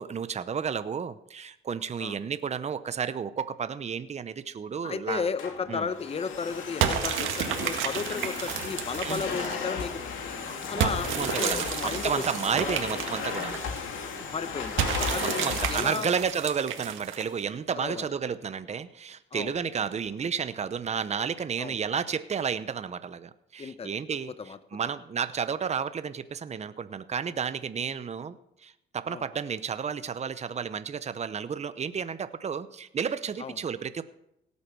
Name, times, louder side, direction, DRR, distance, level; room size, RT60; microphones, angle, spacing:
voice 1, 0.0-5.3 5.7-5.9 9.0-9.2 10.7-11.7 12.0-13.6 15.1-28.4 28.6-34.0, right 6 dB, 35° right, 13 dB, 0.8 m, -32 dB
voice 2, 4.8-10.0 10.4-12.2 12.6-12.8 14.3-16.1 17.7-18.1 19.3-19.5 21.6-21.8 23.6-23.9 24.4-24.6 29.1-29.2 33.4-33.6, left 5 dB, 30° left, 12 dB, 0.8 m, -34 dB
Domestic sounds home sounds, 5.1-15.8, left 5 dB, 75° left, 2.6 m, -35 dB
sound 1, 6.8-9.7 10.8-13.8 14.8-17.4, right 8 dB, 85° right, 1.9 m, -31 dB
17.5 x 8.4 x 6.2 m, 0.80 s
cardioid pair, 90°, 20 cm